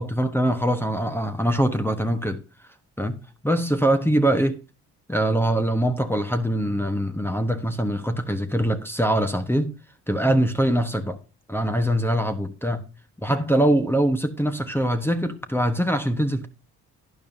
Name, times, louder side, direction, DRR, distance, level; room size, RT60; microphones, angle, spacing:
voice 1, 0.0-2.4 3.0-4.6 5.1-9.7 10.1-11.2 11.5-12.8 13.2-16.5, right 1 dB, 5° left, 1.1 m, -23 dB
12.0 x 9.4 x 2.7 m
hypercardioid pair, 50°, 40 cm